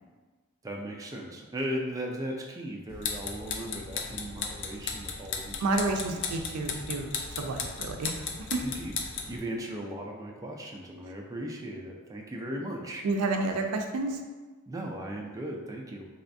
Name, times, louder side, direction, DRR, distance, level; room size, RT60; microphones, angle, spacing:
voice 1, 0.6-5.6 6.1-6.2 8.6-13.0 14.7-16.1, equal, 15° right, -1 dB, 0.3 m, -37 dB
sound 1, 2.9-9.4, left 5 dB, 55° left, 0.4 m, -36 dB
voice 2, 5.6-7.1 7.4-8.6 13.0-14.2, right 3 dB, 90° right, 4 dB, 0.4 m, -30 dB
3.3 x 3.1 x 2.6 m, 1.3 s
head